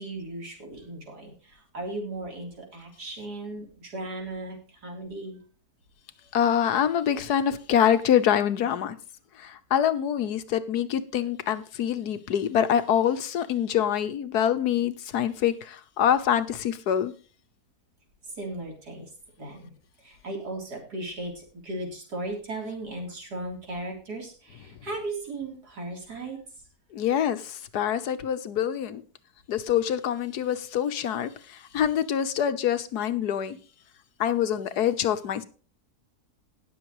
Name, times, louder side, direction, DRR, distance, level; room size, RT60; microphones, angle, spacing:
voice 1, 0.0-5.4 18.4-19.1 19.4-19.7 20.0-26.4, right 2 dB, 90° right, 4.2 m, -36 dB
voice 2, 6.3-9.0 9.4-17.1 26.9-29.0 29.5-33.6 34.2-35.4, left 9 dB, 80° left, 1.5 m, -25 dB
19.0 x 7.0 x 3.1 m
omnidirectional pair, 1.7 m